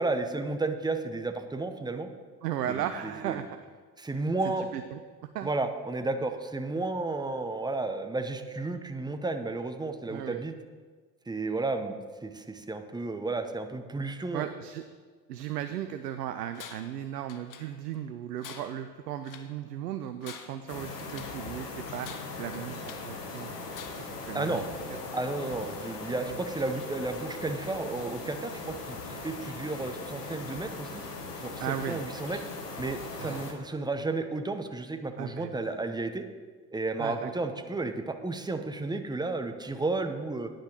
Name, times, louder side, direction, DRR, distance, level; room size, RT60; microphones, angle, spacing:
voice 1, 0.0-2.1 2.7-3.4 4.0-4.7 5.4-10.5 11.3-14.4 24.3-24.6 25.1-30.9 31.4-32.4 32.8-36.3 36.7-40.5, right 3 dB, 10° right, 7 dB, 0.9 m, -32 dB
voice 2, 2.4-3.4 4.4-5.0 5.3-5.5 10.1-10.4 14.3-14.8 15.3-23.6 24.0-24.7 26.3-26.4 31.6-32.0 33.2-33.4 35.2-35.5 37.0-37.3, right 10 dB, 85° right, 9 dB, 0.6 m, -36 dB
Tools, 16.5-17.0 17.3-18.0 18.4-19.6 20.1-21.5 22.0-23.2 23.7-24.2, left 7 dB, 45° left, 1.1 m, -47 dB
sound 1, 20.7-33.5, left 3 dB, 90° left, 1.2 m, -40 dB
10.0 x 6.2 x 6.4 m, 1.5 s
hypercardioid pair, 60°, 46 cm